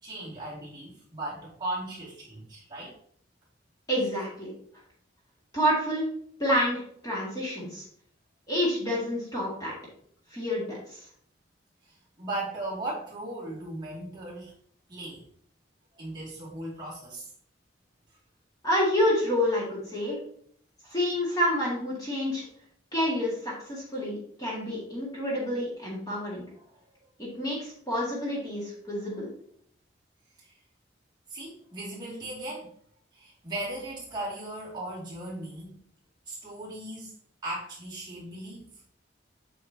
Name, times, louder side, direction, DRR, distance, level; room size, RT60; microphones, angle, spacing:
voice 1, 0.0-2.9 12.2-14.5 14.9-15.2 16.0-17.3 26.6-26.7 30.4-30.5 31.3-32.7 33.1-35.8 36.3-37.1 37.4-38.7, right 1 dB, 25° right, -6 dB, 2.5 m, -37 dB
voice 2, 3.9-4.5 5.5-6.1 6.4-7.8 8.5-9.8 10.3-11.0 18.6-20.2 20.8-22.4 22.9-26.5 27.2-29.3, equal, 20° left, -5 dB, 2.2 m, -28 dB
8.4 x 5.6 x 2.9 m, 0.62 s
head